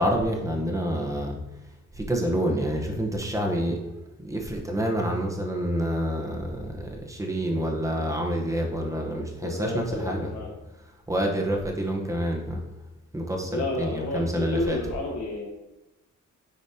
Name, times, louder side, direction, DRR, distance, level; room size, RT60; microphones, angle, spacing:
voice 1, 0.0-10.3 11.1-12.6 13.1-14.8, equal, 10° right, 0 dB, 1.0 m, -28 dB
voice 2, 9.4-10.5 13.5-15.5, left 2 dB, 65° left, -2 dB, 1.2 m, -31 dB
9.8 x 5.1 x 2.8 m, 0.98 s
wide cardioid pair, 155°, 31 cm